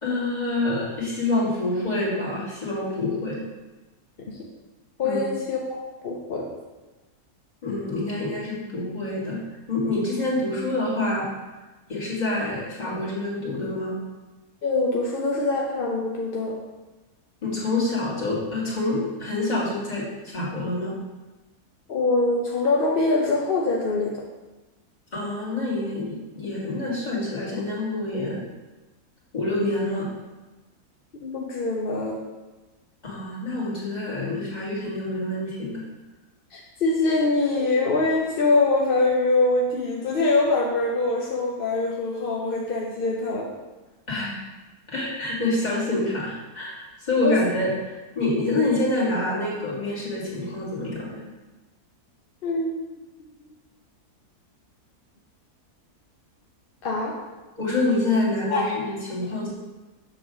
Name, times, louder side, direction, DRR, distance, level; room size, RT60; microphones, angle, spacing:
voice 1, 0.0-3.4 5.0-5.2 7.6-11.3 11.9-13.9 17.4-21.0 25.1-28.4 29.3-30.1 33.0-35.8 44.1-44.4 44.9-51.2 52.5-52.6 57.6-59.5, left 2 dB, 30° left, -7 dB, 2.0 m, -27 dB
voice 2, 5.0-5.8 6.0-6.5 14.6-16.6 21.9-24.2 31.2-32.2 36.5-43.5 47.2-47.4 52.4-52.9 56.8-57.1 58.5-58.6, left 3 dB, 55° left, -2 dB, 0.6 m, -24 dB
7.0 x 3.0 x 6.0 m, 1.1 s
omnidirectional pair, 1.6 m